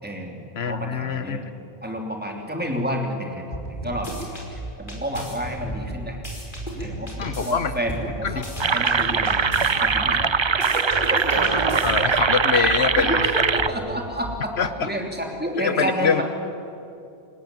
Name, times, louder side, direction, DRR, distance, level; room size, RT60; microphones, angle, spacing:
voice 1, 0.0-1.4 1.8-3.6 3.8-6.2 6.8-8.4 8.7-10.2 10.7-11.6 12.0-12.1 13.0-16.2, equal, 10° right, 1 dB, 3.2 m, -30 dB
voice 2, 0.6-1.4 7.2-7.8 8.2-8.4 11.5-13.3 14.6-14.9 15.6-16.2, left 6 dB, 75° left, 12 dB, 1.3 m, -24 dB
sound 1, 3.5-4.4 4.9-7.5 7.9-9.7 10.1-12.2, equal, 50° left, 5.3 m, -34 dB
sound 2, 3.9-4.9 5.5-7.5 8.2-9.0 9.2-10.2 10.9-14.5, right 2 dB, 50° right, 3.1 m, -37 dB
sound 3, 8.6-13.7, right 5 dB, 35° right, 0.6 m, -21 dB
29.0 x 19.0 x 9.3 m, 2.7 s
omnidirectional pair, 1.1 m